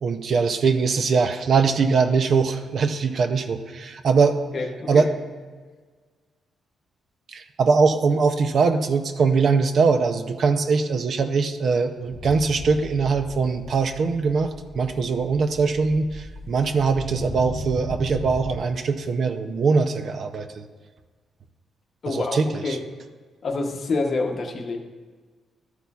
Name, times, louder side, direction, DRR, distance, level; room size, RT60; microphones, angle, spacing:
voice 1, 0.0-4.4 4.9-5.1 7.3-20.6 22.1-22.5, right 5 dB, 50° right, 8 dB, 0.5 m, -22 dB
voice 2, 4.5-5.1 22.0-22.4 22.6-22.8 23.4-24.8, left 3 dB, 40° left, 3 dB, 0.8 m, -27 dB
sound 1, 12.0-18.6, left 1 dB, 10° left, 1.0 m, -37 dB
12.0 x 8.1 x 2.4 m, 1.5 s
cardioid pair, 155°, 0 cm